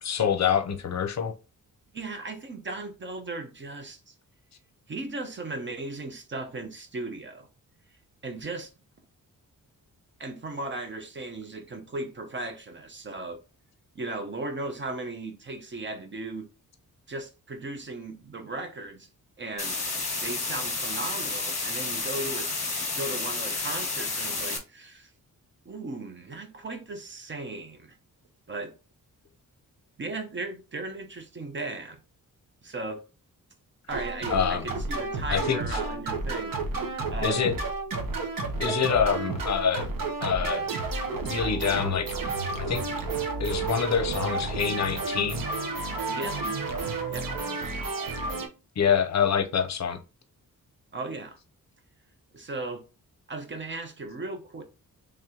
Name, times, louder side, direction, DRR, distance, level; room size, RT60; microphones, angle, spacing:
voice 1, 0.0-1.3 34.3-34.7 35.3-35.8 37.2-37.6 38.6-39.9 40.2-40.7 41.3-42.3 42.6-42.9 43.4-45.4 48.8-50.0, left 7 dB, 50° left, 0.6 m, -26 dB
voice 2, 1.9-4.1 4.9-7.5 8.2-8.7 10.2-13.4 13.9-16.5 17.1-19.1 19.4-19.8 20.2-22.5 22.9-25.1 25.7-28.0 28.5-28.7 30.0-32.0 32.6-33.0 33.9-36.6 36.9-37.5 46.1-46.4 47.1-47.3 50.9-51.4 52.3-52.8 53.3-54.6, right 2 dB, 35° right, 0.6 m, -36 dB
sound 1, 19.6-24.6, left 3 dB, 20° left, 1.1 m, -31 dB
sound 2, 33.9-48.5, right 3 dB, 75° right, 0.9 m, -31 dB
3.3 x 2.9 x 3.7 m
wide cardioid pair, 155°, 34 cm